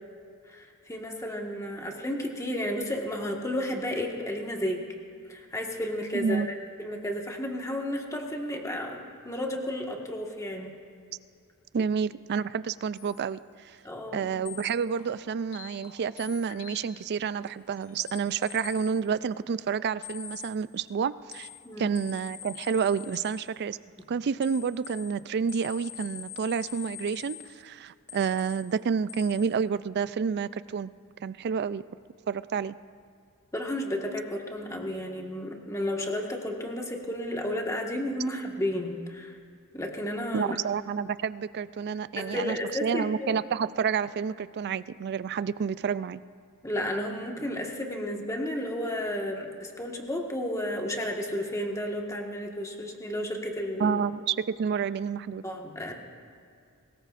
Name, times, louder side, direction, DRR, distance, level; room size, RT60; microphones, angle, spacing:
voice 1, 0.5-4.8 5.3-6.4 6.8-10.8 13.8-14.2 21.6-21.9 33.5-39.4 39.7-40.6 42.2-43.3 46.6-54.0 55.4-55.9, left 1 dB, 15° left, 0 dB, 1.5 m, -32 dB
voice 2, 6.1-6.5 11.7-13.4 13.6-13.8 14.1-21.5 21.8-23.8 24.1-30.9 31.2-31.8 32.3-32.8 40.3-46.2 53.8-55.4, right 6 dB, 50° right, 16 dB, 0.3 m, -29 dB
sound 1, 13.0-13.3 14.1-14.2 14.4-17.1 17.5-19.0 20.0-20.6 21.3-23.5 24.4-27.6 28.1-28.7 29.1-29.5, left 9 dB, 70° left, 1.9 m, -44 dB
23.5 x 19.5 x 2.5 m, 2.4 s
head